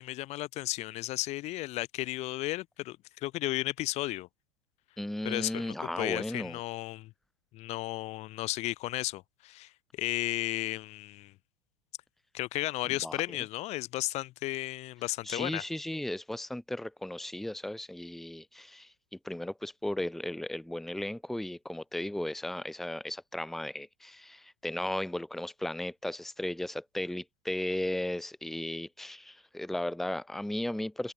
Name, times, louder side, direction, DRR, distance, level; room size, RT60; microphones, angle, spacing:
voice 1, 0.0-4.3 5.2-7.1 7.5-11.3 12.3-15.6, left 18 dB, 40° left, 0.9 m, -34 dB
voice 2, 5.0-6.6 13.0-13.2 15.2-18.9 19.2-31.1, left 1 dB, ahead, 0.8 m, -35 dB
figure-of-eight pair, 85°, 17 cm